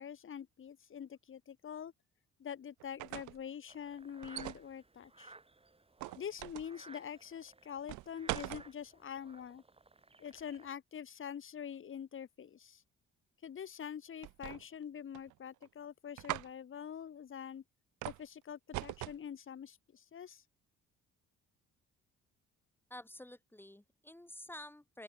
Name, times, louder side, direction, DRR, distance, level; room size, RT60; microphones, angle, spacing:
voice 1, 0.0-1.9 2.4-5.3 6.1-9.6 10.2-12.8 13.4-17.6 18.0-20.4, left 8 dB, 45° left, 1.1 m, -45 dB
sound 1, 2.8-3.4 4.2-4.7 6.0-6.7 7.9-8.7 14.2-14.8 15.1-15.7 16.2-16.5 18.0-18.3 18.7-19.2, right 19 dB, 75° right, 0.4 m, -41 dB
sound 2, 3.7-10.7, right 3 dB, 20° right, 4.2 m, -59 dB
voice 2, 22.9-25.0, left 1 dB, 5° left, 2.9 m, -50 dB
open air
cardioid pair, 90°, 30 cm